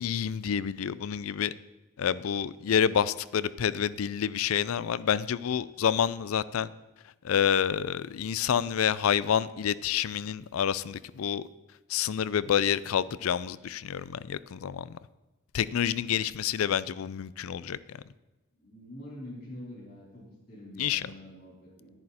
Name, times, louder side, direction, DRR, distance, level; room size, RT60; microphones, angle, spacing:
voice 1, 0.0-1.5 2.0-6.7 7.2-11.4 11.9-14.9 15.5-18.0 20.8-21.1, left 8 dB, 90° left, 18 dB, 0.4 m, -28 dB
voice 2, 18.6-21.9, left 1 dB, 50° left, -3 dB, 4.3 m, -46 dB
10.5 x 10.5 x 4.3 m, 1.1 s
head